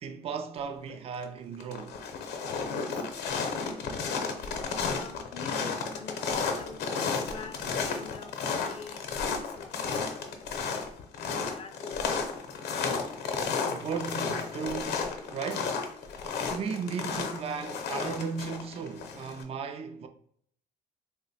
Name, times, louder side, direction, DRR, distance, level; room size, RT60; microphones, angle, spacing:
voice 1, 0.0-2.0 13.6-15.8 16.5-20.1, right 6 dB, 35° right, 0.3 m, -36 dB
sound 1, 0.9-1.2 1.5-19.4, left 5 dB, 75° left, 0.6 m, -33 dB
voice 2, 4.9-10.5 11.4-12.4, left 6 dB, 35° left, 0.4 m, -46 dB
3.0 x 2.1 x 4.0 m
cardioid pair, 110°, 17 cm